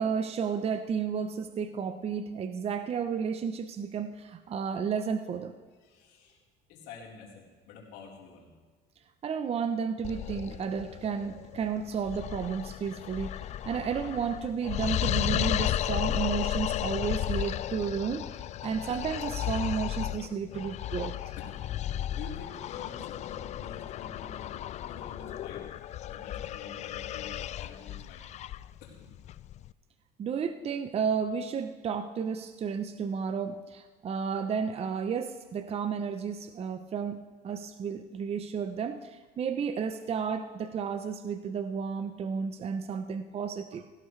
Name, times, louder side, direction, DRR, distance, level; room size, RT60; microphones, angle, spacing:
voice 1, 0.0-5.5 9.2-21.3 30.2-43.9, right 6 dB, 35° right, 9 dB, 0.7 m, -32 dB
voice 2, 5.8-6.4 6.7-8.5 18.6-18.8 20.5-20.6 21.4-21.6 22.1-24.5 24.8-25.7 26.0-28.3 28.8-29.1, left 5 dB, 75° left, -4 dB, 4.1 m, -48 dB
sound 1, 10.0-29.7, left 12 dB, 40° left, 0.4 m, -34 dB
17.5 x 16.5 x 3.3 m, 1.5 s
cardioid pair, 110°, 17 cm